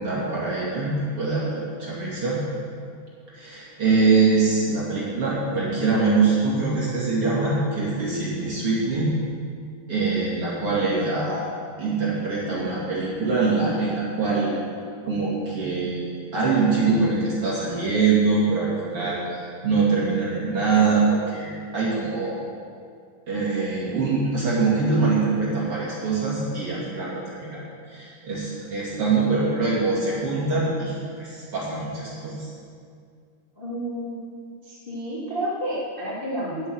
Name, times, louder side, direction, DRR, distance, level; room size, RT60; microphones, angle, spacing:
voice 1, 0.0-2.4 3.3-9.1 9.9-11.5 11.8-14.6 15.0-22.3 23.3-32.5, right 4 dB, 40° right, -7 dB, 2.5 m, -23 dB
voice 2, 33.5-34.4 34.6-36.7, right 1 dB, 30° left, -9 dB, 0.9 m, -30 dB
10.5 x 8.0 x 7.9 m, 2.2 s
omnidirectional pair, 5.4 m